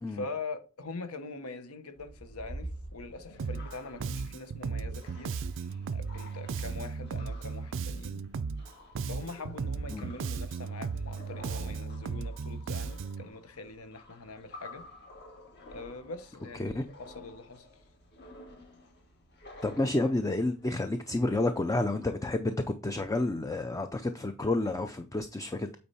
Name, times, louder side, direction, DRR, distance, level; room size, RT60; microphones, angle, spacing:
voice 1, 0.1-5.4 5.9-8.2 9.1-14.9 15.7-17.7, left 3 dB, 70° left, 1.1 m, -43 dB
sound 1, 1.9-20.7, left 1 dB, 50° left, 1.8 m, -50 dB
Bass guitar, 3.4-3.8 4.0-8.7 9.0-13.3, right 5 dB, 60° right, 0.4 m, -36 dB
voice 2, 19.6-25.7, left 2 dB, 15° left, 0.4 m, -30 dB
8.6 x 4.4 x 4.2 m
head